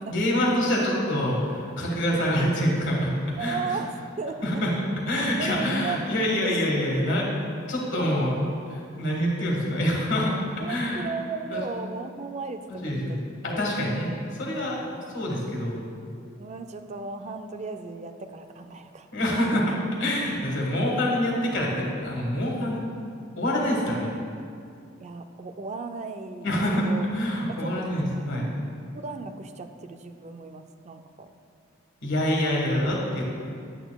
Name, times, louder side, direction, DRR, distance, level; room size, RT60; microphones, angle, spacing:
voice 1, 0.1-3.1 3.4-3.6 4.4-4.7 5.1-7.2 7.7-8.4 8.7-10.4 10.7-11.1 11.5-11.6 12.7-13.2 13.4-14.8 15.1-15.8 19.1-19.6 20.0-22.9 23.4-24.1 26.4-28.5 32.0-33.2, left 1 dB, 65° left, -2 dB, 1.6 m, -26 dB
voice 2, 2.1-2.6 3.4-4.4 5.4-6.0 6.4-6.6 10.6-13.7 14.9-15.0 16.4-19.6 25.0-26.5 26.8-27.1 27.4-28.5 28.9-31.3, right 4 dB, 35° right, 7 dB, 0.4 m, -36 dB
9.9 x 8.9 x 2.3 m, 2.4 s
head